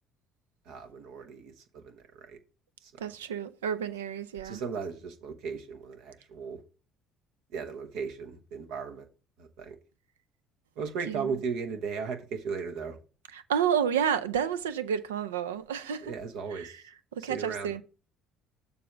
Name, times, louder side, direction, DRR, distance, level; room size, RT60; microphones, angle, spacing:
voice 1, 0.7-2.4 2.8-3.0 4.4-6.6 7.5-9.1 9.4-9.8 10.8-13.0 16.0-16.8 17.3-17.7, right 5 dB, 70° right, 1.0 m, -36 dB
voice 2, 3.0-4.6 11.1-11.4 13.3-16.1 16.5-16.8 17.1-17.8, right 8 dB, 90° right, 0.4 m, -30 dB
6.9 x 3.5 x 6.1 m
hypercardioid pair, 60°, 0 cm